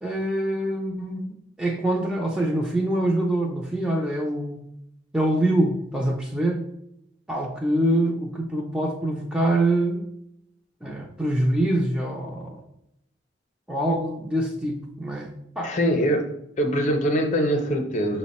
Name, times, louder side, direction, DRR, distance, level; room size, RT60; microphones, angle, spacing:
voice 1, 0.0-4.7 5.1-6.7 7.3-10.1 10.8-12.6 13.7-15.8, right 1 dB, 5° right, 0 dB, 0.4 m, -25 dB
voice 2, 15.6-18.2, equal, 40° left, 4 dB, 0.6 m, -23 dB
5.7 x 2.1 x 4.1 m, 0.78 s
head